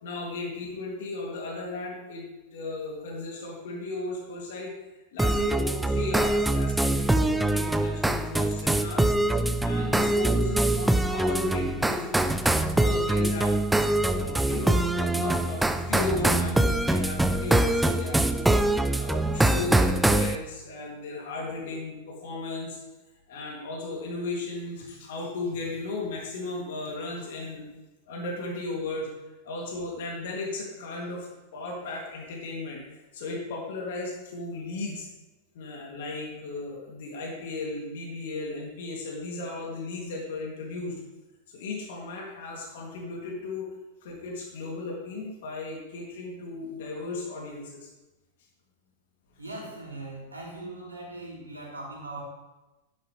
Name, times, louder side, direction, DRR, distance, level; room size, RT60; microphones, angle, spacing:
voice 1, 0.0-2.3 2.5-4.7 5.1-9.1 9.6-13.7 14.1-18.5 19.0-22.8 23.3-27.6 28.1-29.1 29.4-35.1 35.5-40.9 41.5-43.7 44.0-47.9, left 3 dB, 60° left, -1 dB, 3.1 m, -35 dB
sound 1, 5.2-20.4, right 1 dB, 5° right, 0.6 m, -24 dB
voice 2, 49.4-52.2, right 2 dB, 85° right, -4 dB, 3.9 m, -40 dB
12.5 x 10.5 x 3.5 m, 1.1 s
figure-of-eight pair, 95°, 0 cm